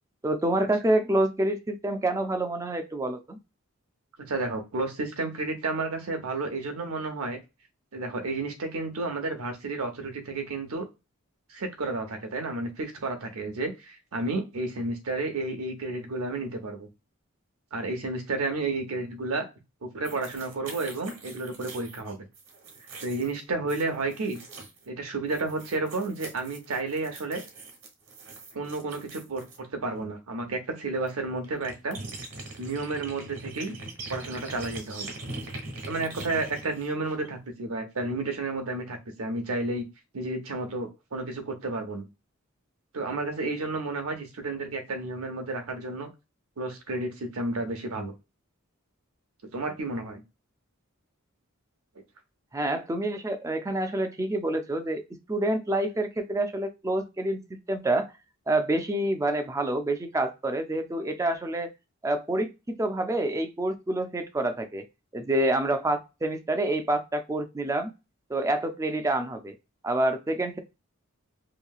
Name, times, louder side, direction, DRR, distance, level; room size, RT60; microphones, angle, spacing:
voice 1, 0.2-3.4 52.5-55.0 55.3-58.1 58.5-61.7 62.0-64.8 65.1-67.9 68.3-69.5 69.8-70.6, right 1 dB, 15° right, 8 dB, 0.3 m, -27 dB
voice 2, 4.3-7.4 7.9-10.9 11.5-16.9 17.7-19.5 19.8-22.2 23.0-24.4 24.9-27.4 28.5-32.0 32.6-33.8 34.1-35.1 35.9-39.9 40.1-42.1 42.9-46.1 46.6-48.1 49.5-50.2, right 2 dB, 80° right, 5 dB, 0.7 m, -31 dB
sound 1, 20.0-24.9 25.3-29.6 31.1-31.2 31.4-37.4, right 2 dB, 60° right, 1.2 m, -42 dB
2.9 x 2.7 x 2.3 m, 0.26 s
head